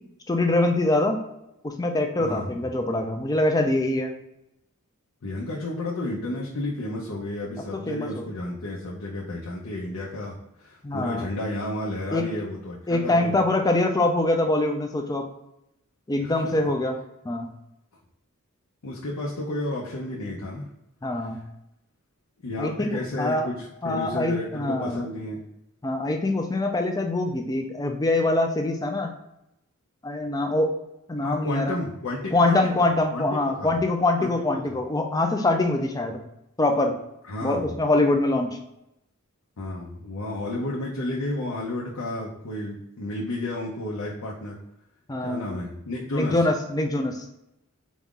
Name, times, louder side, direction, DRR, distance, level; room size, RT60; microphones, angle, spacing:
voice 1, 0.3-1.2 1.6-4.1 7.7-8.2 10.8-11.3 12.1-12.3 12.9-15.2 16.1-16.9 17.2-17.5 21.0-21.4 22.6-23.5 23.8-25.1 25.8-29.1 30.0-30.7 31.1-31.8 32.3-36.2 36.6-36.9 37.4-38.6 45.1-45.5 46.1-47.2, left 2 dB, 15° left, 4 dB, 0.4 m, -24 dB
voice 2, 2.2-2.6 5.2-13.4 16.2-16.5 18.8-20.7 21.2-21.3 22.4-25.4 31.2-33.8 34.2-34.6 37.2-37.7 39.6-44.6 45.2-46.4, left 1 dB, 75° left, -4 dB, 0.7 m, -32 dB
4.1 x 2.4 x 3.7 m, 0.85 s
head